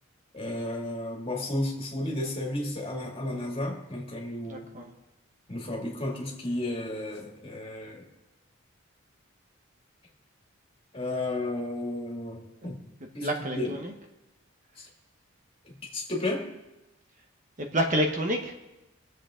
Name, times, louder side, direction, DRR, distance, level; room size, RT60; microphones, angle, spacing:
voice 1, 0.3-4.7 5.5-8.1 10.9-12.8 13.1-13.8 14.8-14.9 15.6-16.5, left 1 dB, 25° left, -2 dB, 2.4 m, -33 dB
voice 2, 4.5-4.9 13.2-13.9 17.6-18.6, equal, 35° right, 3 dB, 1.1 m, -28 dB
23.0 x 7.8 x 3.8 m, 1.0 s
head